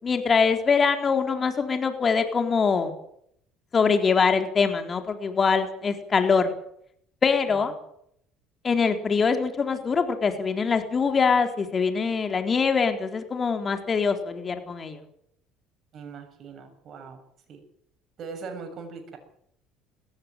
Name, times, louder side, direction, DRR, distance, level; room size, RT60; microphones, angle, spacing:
voice 1, 0.0-2.9 3.7-6.5 7.2-7.7 8.6-15.0, left 5 dB, 35° left, 6 dB, 4.0 m, -23 dB
voice 2, 15.9-17.2 17.5-17.6 18.2-19.2, right 5 dB, 50° right, 6 dB, 7.2 m, -40 dB
20.0 x 15.5 x 9.2 m, 0.71 s
hypercardioid pair, 70°, 0 cm